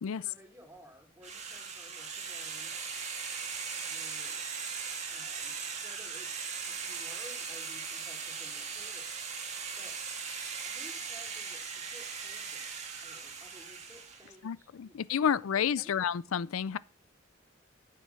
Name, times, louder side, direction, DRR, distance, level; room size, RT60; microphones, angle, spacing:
voice 1, 0.1-2.7 3.8-4.4 5.1-9.2 9.7-10.0 10.6-12.6 13.0-15.0 15.3-16.1, equal, 10° right, 2.8 m, -56 dB
sound 1, 1.2-14.3, right 6 dB, 35° right, 2.1 m, -39 dB
voice 2, 14.4-16.8, left 7 dB, 85° left, 0.4 m, -30 dB
10.0 x 7.6 x 5.6 m
head